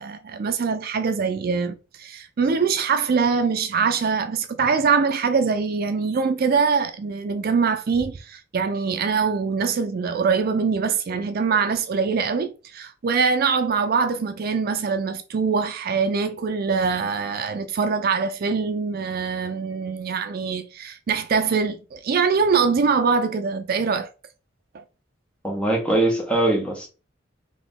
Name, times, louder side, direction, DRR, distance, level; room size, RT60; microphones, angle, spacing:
voice 1, 0.0-24.1 24.7-24.8, right 5 dB, 50° right, 0.4 m, -23 dB
voice 2, 25.4-26.9, right 2 dB, 5° left, 1.1 m, -22 dB
4.1 x 2.9 x 3.5 m
head